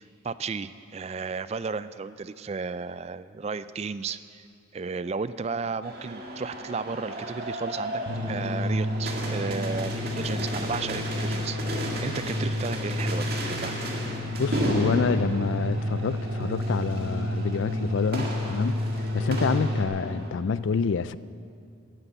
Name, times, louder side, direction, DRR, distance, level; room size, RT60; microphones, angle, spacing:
voice 1, 0.0-4.5 4.7-8.0 8.3-13.7, right 4 dB, 30° right, 0.3 m, -34 dB
sound 1, 5.8-20.3, right 1 dB, 50° right, 2.1 m, -34 dB
sound 2, 8.1-19.8, left 1 dB, 85° right, 1.2 m, -30 dB
voice 2, 14.4-18.8 19.1-21.2, left 5 dB, 70° left, 0.4 m, -27 dB
14.5 x 10.0 x 9.1 m
head